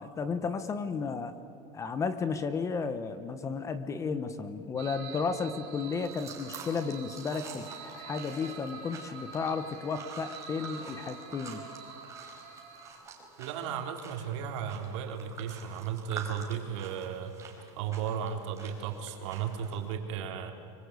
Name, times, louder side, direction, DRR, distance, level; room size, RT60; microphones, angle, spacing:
voice 1, 0.0-1.3 1.7-11.6, left 5 dB, 15° left, 11 dB, 1.0 m, -33 dB
sound 1, 4.8-12.9, right 5 dB, 40° right, 4.6 m, -46 dB
sound 2, 5.9-19.9, right 5 dB, 15° right, 4.1 m, -48 dB
voice 2, 13.4-17.3 17.8-20.5, right 8 dB, 65° right, 3 dB, 3.6 m, -35 dB
24.5 x 24.5 x 8.3 m, 2.8 s
supercardioid pair, 165°, 17 cm